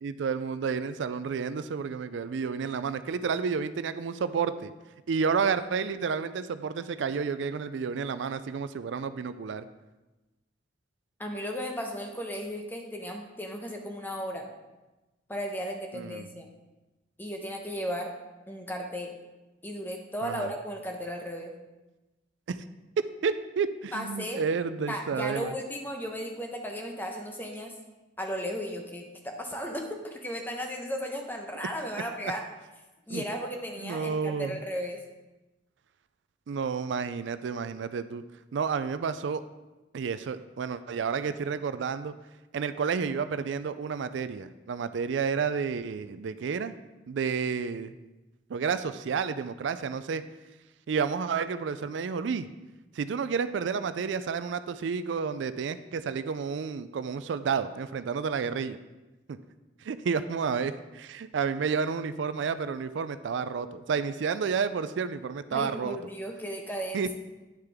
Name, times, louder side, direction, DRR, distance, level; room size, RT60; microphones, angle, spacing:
voice 1, 0.0-4.7 5.1-9.7 15.9-16.3 20.2-20.5 22.5-22.6 23.2-25.5 33.1-33.2 33.8-34.6 36.5-38.2 38.5-39.4 39.9-42.1 42.5-46.8 47.1-47.9 48.5-50.2 50.9-52.5 52.9-58.8 59.3-59.4 59.8-66.0 66.9-67.2, right 6 dB, 80° right, 13 dB, 0.4 m, -30 dB
voice 2, 11.2-14.5 15.3-16.5 17.2-18.1 18.5-19.1 19.6-21.5 23.9-24.4 24.9-27.7 28.2-32.4 33.1-35.0 65.5-67.2, equal, 10° left, 2 dB, 0.9 m, -35 dB
9.8 x 6.6 x 3.5 m, 1.1 s
head